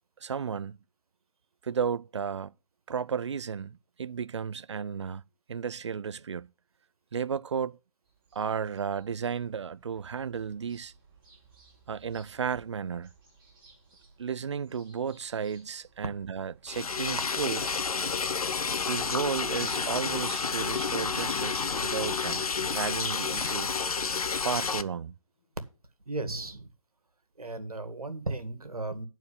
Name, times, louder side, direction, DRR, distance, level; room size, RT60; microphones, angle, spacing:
voice 1, 0.2-0.8 1.6-2.5 2.9-5.2 5.5-6.5 7.1-7.8 8.3-10.9 11.9-13.1 14.2-17.8 18.9-23.7 24.3-25.1, right 7 dB, 50° right, 0.4 m, -33 dB
sound 1, 8.0-22.6, right 4 dB, 20° right, 5.9 m, -59 dB
Liquid, 16.7-24.8, left 5 dB, 80° left, 0.7 m, -30 dB
sound 2, 19.6-24.0 26.2-26.5, left 5 dB, 30° left, 1.5 m, -52 dB
voice 2, 26.1-26.7 27.4-29.1, right 2 dB, 85° right, 2.0 m, -35 dB
10.5 x 4.5 x 6.8 m
figure-of-eight pair, 160°, 18 cm